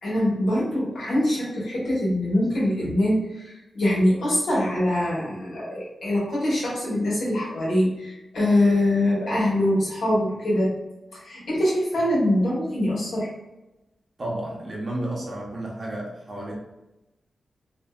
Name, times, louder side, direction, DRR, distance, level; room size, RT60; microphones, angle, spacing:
voice 1, 0.0-10.8 11.1-13.3, left 1 dB, 80° left, -7 dB, 1.3 m, -23 dB
voice 2, 14.2-16.5, right 1 dB, 35° right, -4 dB, 0.8 m, -32 dB
2.6 x 2.6 x 2.4 m, 0.99 s
wide cardioid pair, 140°, 0 cm